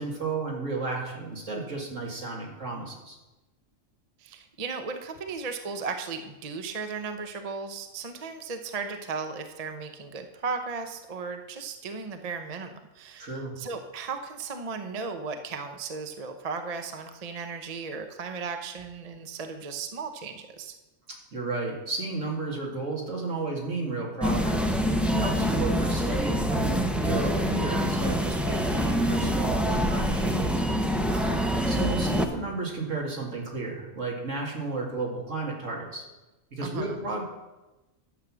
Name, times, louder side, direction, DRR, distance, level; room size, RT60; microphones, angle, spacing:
voice 1, 0.0-3.2 13.2-13.6 21.3-30.5 31.7-36.0 36.5-37.2, right 3 dB, 70° right, -1 dB, 2.6 m, -33 dB
voice 2, 4.2-20.7 25.4-25.5 31.1-31.7 36.6-37.0, right 4 dB, 35° right, 6 dB, 0.8 m, -36 dB
sound 1, 24.2-32.2, equal, ahead, 0.5 m, -25 dB
11.5 x 7.4 x 6.2 m, 1.1 s
omnidirectional pair, 1.3 m